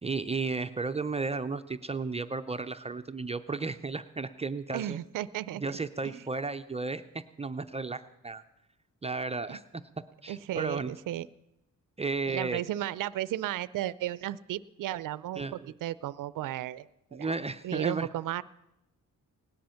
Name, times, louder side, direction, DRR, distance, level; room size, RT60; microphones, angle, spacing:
voice 1, 0.0-5.0 5.6-7.0 7.4-8.4 9.0-9.6 10.2-10.9 12.0-12.6 15.4-15.6 17.1-18.1, right 4 dB, 20° right, 9 dB, 0.4 m, -33 dB
voice 2, 4.7-5.8 6.0-6.2 9.5-9.6 10.3-11.3 12.3-16.9 17.1-17.3 17.6-18.4, right 13 dB, 75° right, 17 dB, 0.5 m, -34 dB
18.0 x 10.5 x 5.6 m, 0.88 s
wide cardioid pair, 135°, 32 cm